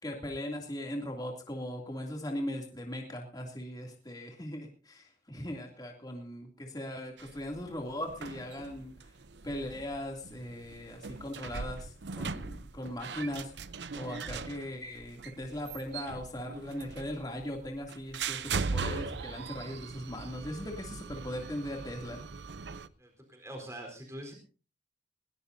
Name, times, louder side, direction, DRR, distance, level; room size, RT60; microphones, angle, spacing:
voice 1, 0.0-9.1 9.4-13.5 13.9-22.2, left 1 dB, 25° left, 1 dB, 2.8 m, -39 dB
sound 1, 7.2-22.9, right 4 dB, 80° right, 0.7 m, -40 dB
voice 2, 23.0-24.3, right 1 dB, 15° right, 2 dB, 4.2 m, -44 dB
20.5 x 19.5 x 2.7 m, 0.36 s
head